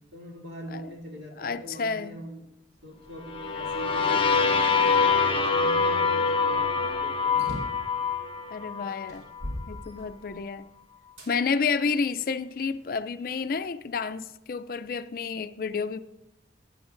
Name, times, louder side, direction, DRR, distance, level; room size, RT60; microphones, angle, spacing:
voice 1, 0.0-2.5 2.8-7.5, equal, 70° right, 2.6 m, -42 dB
voice 2, 1.4-2.2 8.5-9.2 9.7-10.7 11.3-16.0, left 5 dB, 55° left, 0.4 m, -30 dB
sound 1, 3.3-9.1, left 5 dB, 30° left, 1.0 m, -25 dB
sound 2, 7.4-7.9 8.5-8.6 9.1-10.5 11.2-11.3 12.0-13.1, equal, 90° right, 4.3 m, -39 dB
17.0 x 11.0 x 2.6 m
head